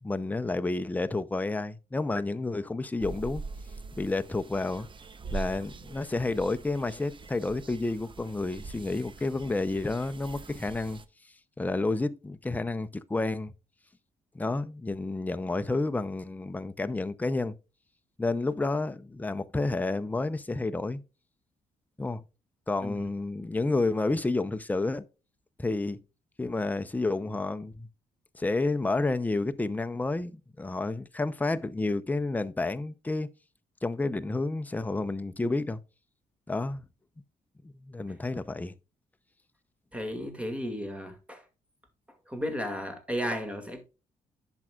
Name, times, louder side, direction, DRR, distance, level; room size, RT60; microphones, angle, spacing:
voice 1, 0.0-3.4 4.0-4.9 5.3-11.0 11.6-13.5 14.3-17.6 18.2-21.0 22.0-22.2 22.7-25.0 25.6-26.0 26.4-27.9 28.3-33.3 33.8-35.8 36.5-36.9 37.8-38.7, left 2 dB, 10° left, 0.6 m, -30 dB
sound 1, 3.0-11.0, right 4 dB, 35° right, 0.8 m, -43 dB
voice 2, 39.9-41.4 42.3-43.8, equal, 10° right, 2.1 m, -34 dB
10.5 x 6.2 x 2.3 m
cardioid pair, 85°, 15 cm